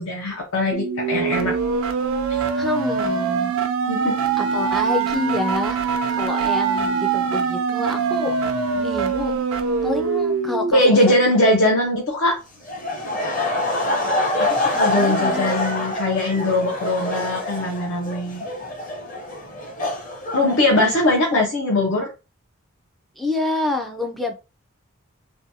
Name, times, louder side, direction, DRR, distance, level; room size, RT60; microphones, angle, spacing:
voice 1, 0.0-1.6 2.3-2.4 3.9-4.1 10.7-12.4 14.4-18.4 20.3-22.1, left 1 dB, 70° left, 0.7 m, -20 dB
sound 1, 0.7-10.7, right 5 dB, 80° right, 0.4 m, -23 dB
voice 2, 2.5-3.5 4.4-5.8 6.1-8.3 8.7-9.4 9.8-11.0 14.7-15.5 21.3-21.4 23.2-24.3, left 2 dB, ahead, 0.3 m, -27 dB
Laughter, 12.6-21.2, left 1 dB, 40° left, 0.8 m, -25 dB
2.7 x 2.2 x 2.7 m
head